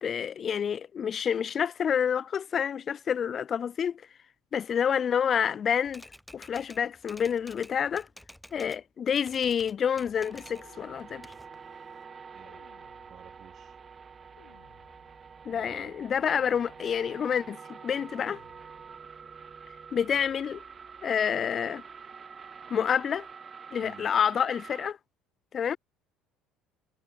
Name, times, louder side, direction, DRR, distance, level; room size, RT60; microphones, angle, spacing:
voice 1, 0.0-4.0 4.5-6.0 6.3-8.1 8.5-11.3 15.5-17.6 17.8-18.4 19.9-20.6 21.0-21.8 22.7-23.3 23.7-25.0 25.5-25.8, left 8 dB, 45° left, 0.5 m, -28 dB
Typewriter, 5.8-8.8 9.1-10.7 11.0-12.0, left 1 dB, 5° left, 3.3 m, -51 dB
sound 1, 10.1-24.9, right 6 dB, 35° right, 2.0 m, -47 dB
sound 2, 10.5-11.7 12.4-13.6 14.4-15.5 16.3-17.3 18.2-19.1 20.0-20.9, left 27 dB, 75° left, 7.7 m, -62 dB
voice 2, 12.3-12.6 13.1-13.8 15.5-15.9 23.8-24.1, right 10 dB, 50° right, 4.1 m, -52 dB
hypercardioid pair, 70°, 0 cm